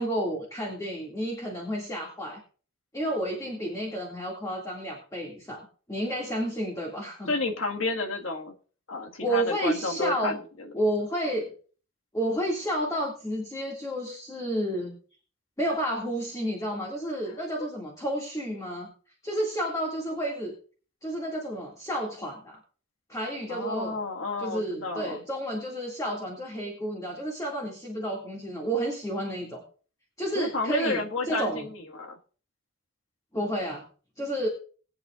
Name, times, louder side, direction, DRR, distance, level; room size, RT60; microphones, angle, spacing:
voice 1, 0.0-2.4 2.9-7.3 9.2-10.4 10.7-11.5 12.1-14.9 15.6-18.9 19.2-20.5 21.0-22.6 23.1-23.9 24.4-29.6 30.2-31.0 31.3-31.7 33.3-33.8 34.2-34.5, right 1 dB, 15° left, -2 dB, 2.3 m, -31 dB
voice 2, 7.3-8.5 8.9-10.7 23.5-25.2 30.3-32.2, left 3 dB, 75° left, 3 dB, 1.8 m, -31 dB
20.5 x 8.6 x 2.5 m, 0.40 s
head